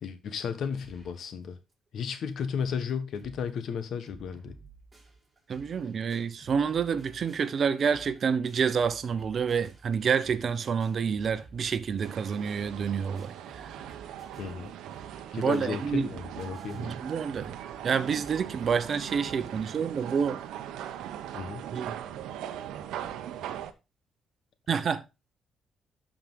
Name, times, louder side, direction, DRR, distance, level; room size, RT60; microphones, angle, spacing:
voice 1, 0.0-1.6 1.9-4.6 14.4-14.7 15.3-16.9 21.3-21.6, left 6 dB, 65° left, 1.3 m, -34 dB
sound 1, 0.8-1.3 1.7-1.8 2.0-2.1 2.6-2.7 2.9-3.5 3.8-19.6, right 3 dB, 20° right, 5.7 m, -54 dB
voice 2, 5.5-13.8 15.3-16.1 16.7-17.6 17.8-20.4 21.7-22.0 24.7-25.0, right 6 dB, 50° right, 0.8 m, -28 dB
sound 2, 12.0-23.7, right 10 dB, 85° right, 0.7 m, -40 dB
12.0 x 4.9 x 3.7 m
cardioid pair, 90°, 0 cm